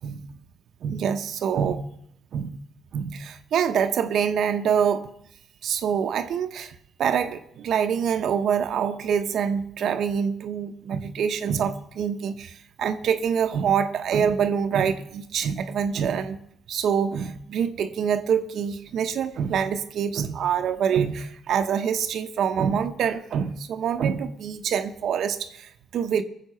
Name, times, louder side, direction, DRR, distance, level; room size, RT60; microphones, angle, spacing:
voice 1, 0.8-1.9 2.3-2.6 2.9-5.1 5.6-16.4 16.7-26.2, right 7 dB, 70° right, 8 dB, 0.8 m, -25 dB
19.5 x 7.4 x 5.7 m, 0.74 s
cardioid pair, 90°, 0 cm